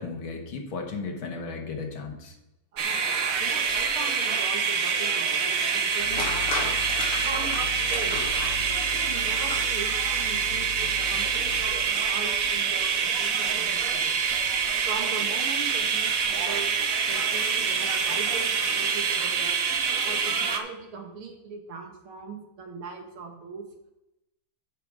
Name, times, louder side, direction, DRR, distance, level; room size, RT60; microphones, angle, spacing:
voice 1, 0.0-2.3, left 4 dB, 70° left, 3 dB, 2.2 m, -35 dB
voice 2, 2.7-3.1 3.4-5.3 5.7-6.8 7.2-8.2 8.9-14.4 14.8-16.7 17.0-19.6 20.0-23.6, right 4 dB, 75° right, 3 dB, 2.4 m, -39 dB
sound 1, 2.8-20.6, right 6 dB, 55° right, 1.0 m, -26 dB
sound 2, 6.0-11.8, left 3 dB, 85° left, 3.2 m, -35 dB
11.5 x 6.5 x 4.8 m, 0.90 s
omnidirectional pair, 2.4 m